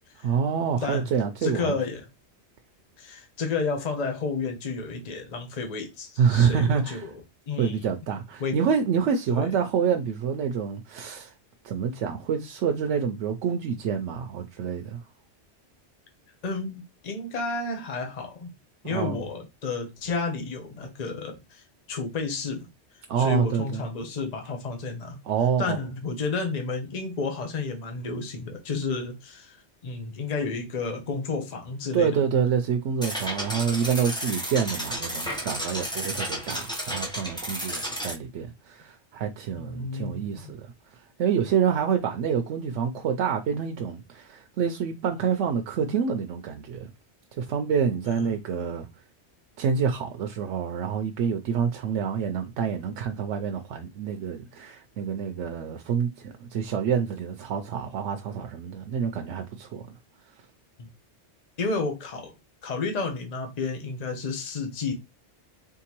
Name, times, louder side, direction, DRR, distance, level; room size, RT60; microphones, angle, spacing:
voice 1, 0.2-1.8 6.2-7.1 7.6-11.3 11.6-15.0 18.8-19.2 23.1-23.8 25.2-25.8 31.9-40.7 40.9-46.9 47.4-48.9 49.6-60.0, right 7 dB, 85° right, 0.9 m, -27 dB
voice 2, 0.8-1.1 1.4-2.1 3.0-7.1 7.5-7.9 8.4-8.6 9.3-9.5 16.4-18.5 18.8-22.7 23.2-25.2 25.6-29.6 29.8-32.1 39.6-40.5 48.1-48.3 60.8-60.9 61.6-62.3 62.6-64.9, left 4 dB, 40° left, 0.9 m, -31 dB
sound 1, 33.0-38.1, equal, 5° left, 0.8 m, -32 dB
3.8 x 3.6 x 2.9 m
omnidirectional pair, 1.2 m